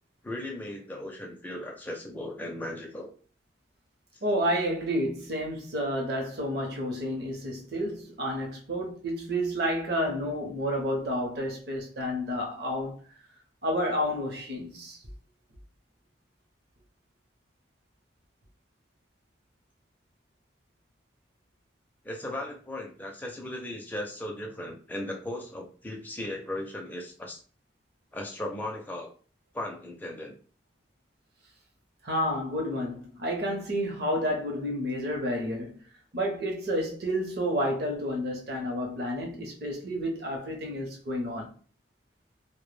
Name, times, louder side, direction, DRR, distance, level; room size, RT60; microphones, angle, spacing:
voice 1, 0.2-3.1 4.1-4.2 22.0-27.4 28.1-29.1 29.5-30.4, left 1 dB, 10° left, 0.4 m, -37 dB
voice 2, 4.2-13.0 13.6-15.0 32.0-35.8 36.1-41.5, equal, 55° right, 0.7 m, -30 dB
2.1 x 2.1 x 3.1 m
head